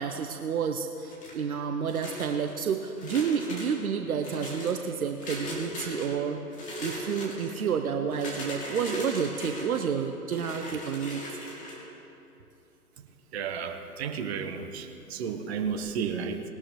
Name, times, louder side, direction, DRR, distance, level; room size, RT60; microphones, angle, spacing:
voice 1, 0.0-6.4 6.8-11.2, right 7 dB, 65° right, 6 dB, 0.9 m, -30 dB
sound 1, 1.1-1.5 1.9-2.5 3.0-3.7 4.2-4.7 5.2-6.1 6.5-7.5 8.1-9.8 10.3-11.8, left 1 dB, 15° left, 2.5 m, -39 dB
voice 2, 13.3-16.4, right 6 dB, 40° right, 6 dB, 1.1 m, -33 dB
19.5 x 12.0 x 3.1 m, 2.8 s
figure-of-eight pair, 125°, 46 cm